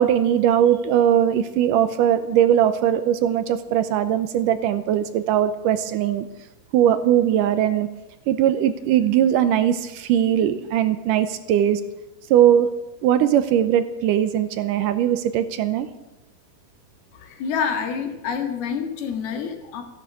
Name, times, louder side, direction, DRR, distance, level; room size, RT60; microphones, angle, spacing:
voice 1, 0.0-6.3 6.7-7.9 8.3-11.8 12.3-12.7 13.0-15.9, right 10 dB, 75° right, 11 dB, 2.0 m, -20 dB
voice 2, 17.1-19.8, left 6 dB, 80° left, 5 dB, 3.8 m, -27 dB
15.0 x 11.0 x 8.2 m, 1.0 s
omnidirectional pair, 4.4 m